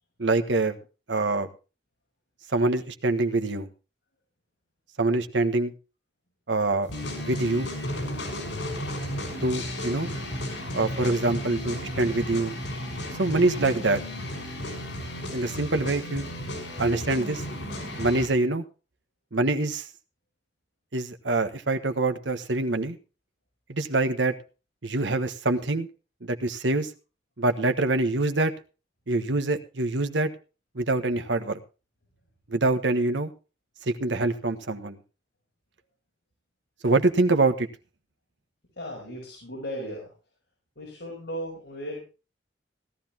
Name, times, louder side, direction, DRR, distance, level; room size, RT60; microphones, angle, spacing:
voice 1, 0.2-0.8 1.1-1.5 2.5-3.7 5.0-5.7 6.5-6.9 7.2-7.7 9.4-10.1 10.7-12.5 13.2-14.0 15.3-16.3 16.8-17.4 18.0-18.6 19.3-19.9 20.9-23.0 23.7-24.3 24.8-25.9 26.2-26.9 27.4-28.5 29.1-30.3 30.7-31.6 32.5-33.3 33.8-35.0 36.8-37.7, right 2 dB, 80° right, 8 dB, 1.4 m, -25 dB
sound 1, 6.9-18.3, left 1 dB, 85° left, 5.7 m, -34 dB
voice 2, 38.8-40.1 40.8-42.0, equal, 65° left, -2 dB, 5.9 m, -36 dB
17.0 x 13.0 x 2.9 m, 0.33 s
head